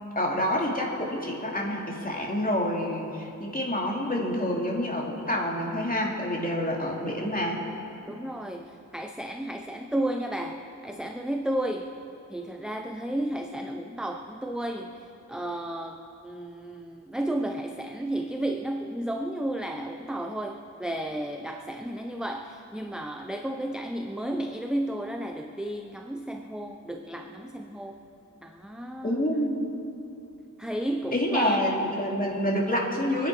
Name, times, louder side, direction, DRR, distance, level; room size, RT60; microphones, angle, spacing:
voice 1, 0.1-7.6 29.0-29.7 31.1-33.3, left 1 dB, 25° left, -2 dB, 2.7 m, -27 dB
voice 2, 8.0-11.9 12.3-28.0 28.4-29.2 30.6-31.6, right 1 dB, ahead, 4 dB, 0.7 m, -33 dB
25.0 x 10.5 x 4.9 m, 2.8 s
wide cardioid pair, 70°, 32 cm